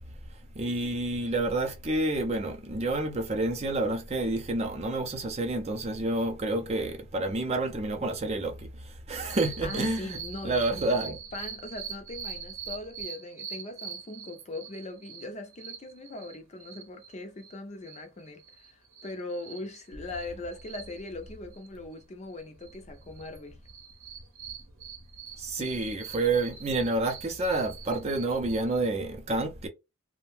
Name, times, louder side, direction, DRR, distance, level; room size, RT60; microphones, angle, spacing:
voice 1, 0.5-10.2 10.4-11.2 25.4-29.7, right 2 dB, 30° right, 0.5 m, -29 dB
sound 1, 9.3-17.1 17.4-17.5 17.8-22.0 22.3-23.4 23.7-28.9, right 7 dB, 65° right, 0.8 m, -43 dB
voice 2, 9.6-23.6, left 2 dB, 30° left, 0.5 m, -40 dB
2.6 x 2.1 x 3.1 m
head